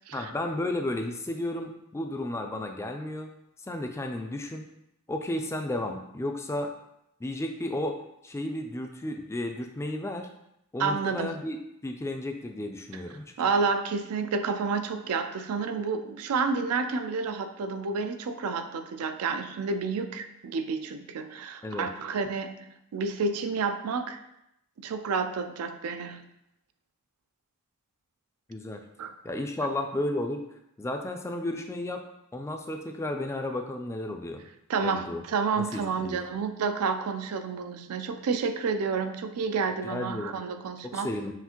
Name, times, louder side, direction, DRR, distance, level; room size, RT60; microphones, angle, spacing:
voice 1, 0.1-3.3 3.7-4.6 5.1-6.7 7.2-8.0 8.2-10.3 10.7-11.6 11.8-13.3 21.6-21.9 28.5-28.8 29.2-30.4 30.8-32.0 32.3-34.4 34.8-35.2 35.6-36.3 39.8-40.3 40.8-41.3, left 1 dB, 15° left, 4 dB, 0.3 m, -33 dB
voice 2, 10.8-11.3 13.4-24.2 24.8-26.3 29.0-29.1 34.7-41.1, right 5 dB, 80° right, 8 dB, 0.4 m, -30 dB
5.7 x 2.5 x 2.9 m, 0.82 s
head